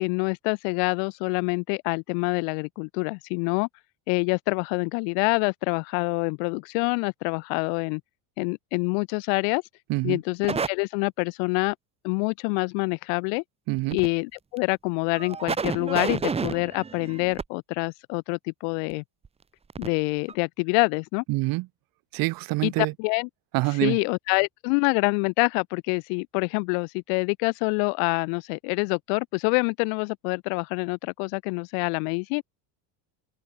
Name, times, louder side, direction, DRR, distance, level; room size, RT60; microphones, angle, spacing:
voice 1, 0.0-3.7 4.1-8.0 8.4-9.6 10.0-11.7 12.0-13.4 13.9-19.0 19.8-21.2 22.6-23.3 23.7-32.4, left 40 dB or more, 70° left, 1.0 m, -26 dB
sound 1, 10.4-10.7 13.8-14.1 14.6-14.7 15.2-17.4 19.2-19.3 19.7-19.9 20.3-20.4, right 5 dB, 15° right, 1.2 m, -30 dB
voice 2, 13.7-14.0 21.3-21.7 22.1-22.9 23.5-24.0, right 22 dB, 50° right, 1.1 m, -25 dB
open air
cardioid pair, 165°, 46 cm